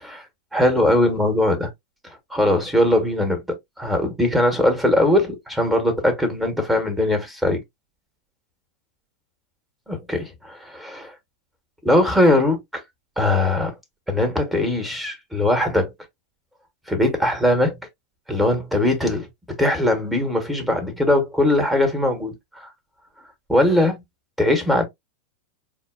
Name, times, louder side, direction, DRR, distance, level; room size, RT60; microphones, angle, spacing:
voice 1, 0.5-1.7 2.0-3.4 3.8-7.6 9.9-11.1 11.8-12.8 13.2-13.7 14.1-15.9 16.9-17.8 18.3-19.3 19.6-22.7 23.5-24.0 24.4-24.8, left 1 dB, 5° right, 1.2 m, -20 dB
4.4 x 2.2 x 2.4 m
figure-of-eight pair, 90°, 0 cm